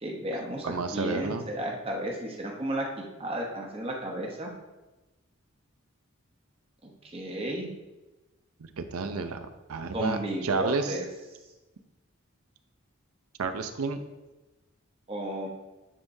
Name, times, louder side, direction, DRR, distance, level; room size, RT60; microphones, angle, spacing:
voice 1, 0.0-4.5 6.8-7.7 9.9-11.1 15.1-15.5, right 1 dB, 25° right, 0 dB, 0.8 m, -33 dB
voice 2, 0.6-1.4 8.6-11.0 13.4-14.0, right 4 dB, 90° right, 9 dB, 0.5 m, -31 dB
9.8 x 3.6 x 2.7 m, 1.1 s
head